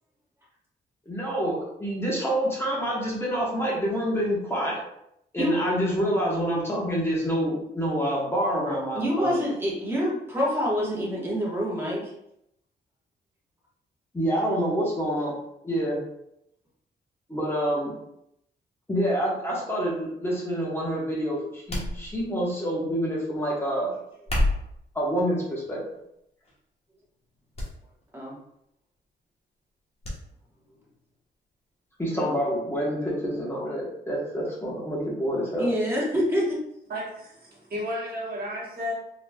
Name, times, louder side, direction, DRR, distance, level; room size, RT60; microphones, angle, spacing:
voice 1, 1.0-4.8 5.3-9.4 14.1-15.3 15.6-16.0 17.3-17.9 18.9-23.9 24.9-25.8 32.0-35.7, equal, 15° left, -5 dB, 1.1 m, -27 dB
voice 2, 8.9-12.1 28.1-28.4 35.6-36.6, equal, 15° right, -5 dB, 1.4 m, -26 dB
sound 1, 21.7-22.5 24.1-24.8 25.6-26.0 26.4-26.6 27.5-27.7 28.0-28.1 30.0-30.2 30.6-30.7, left 1 dB, 35° left, 1.2 m, -28 dB
voice 3, 36.9-38.9, left 1 dB, 55° right, -5 dB, 1.3 m, -33 dB
3.9 x 3.1 x 2.3 m, 0.78 s
cardioid pair, 105°, 18 cm